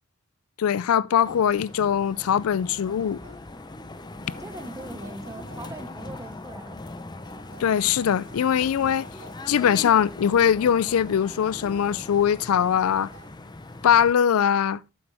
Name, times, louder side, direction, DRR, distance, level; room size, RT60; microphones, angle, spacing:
voice 1, 0.6-3.2 7.6-9.1 9.5-13.1 13.8-14.8, left 8 dB, 85° left, 0.4 m, -21 dB
sound 1, 1.2-14.1, left 2 dB, 20° left, 0.7 m, -41 dB
sound 2, 1.3-3.7 4.2-6.6 7.2-9.7 10.2-12.7 13.1-13.3, right 1 dB, 70° right, 2.2 m, -51 dB
voice 2, 4.4-6.8 9.1-9.3, right 2 dB, 15° right, 1.0 m, -41 dB
8.9 x 7.1 x 3.3 m
head